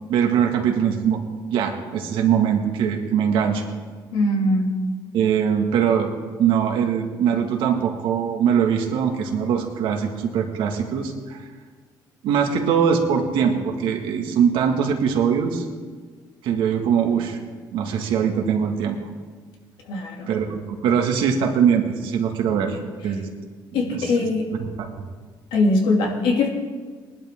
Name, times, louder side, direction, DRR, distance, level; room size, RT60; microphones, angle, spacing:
voice 1, 0.1-1.2 1.5-3.7 5.1-6.1 6.4-11.4 12.2-15.6 16.4-17.4 17.7-19.0 20.3-22.8 23.0-23.3 23.8-24.3 24.8-25.0, right 7 dB, 85° right, 3 dB, 1.8 m, -22 dB
voice 2, 4.1-4.8 19.9-20.3 23.7-24.5 25.5-26.5, left 2 dB, 85° left, 1 dB, 2.5 m, -21 dB
20.0 x 11.5 x 3.7 m, 1.5 s
cardioid pair, 110°, 9 cm